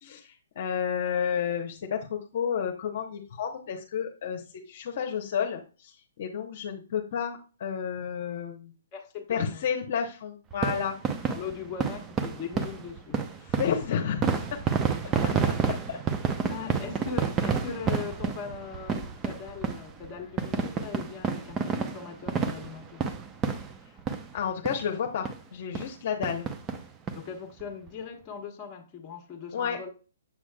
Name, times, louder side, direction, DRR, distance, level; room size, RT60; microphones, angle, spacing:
voice 1, 0.0-8.7 9.3-11.0 13.6-14.6 15.2-15.5 15.9-16.0 24.3-26.5 29.5-29.8, left 7 dB, 50° left, 0.9 m, -31 dB
voice 2, 8.9-9.6 11.3-13.2 15.1-15.8 16.5-23.0 27.1-29.9, left 6 dB, 25° left, 1.3 m, -40 dB
sound 1, 10.5-24.4 24.7-24.8 25.2-25.4 25.7-25.9 26.2-27.2 27.6-27.7 27.9-28.0, right 6 dB, 20° right, 0.7 m, -30 dB
7.3 x 6.1 x 2.3 m
hypercardioid pair, 135°, 0 cm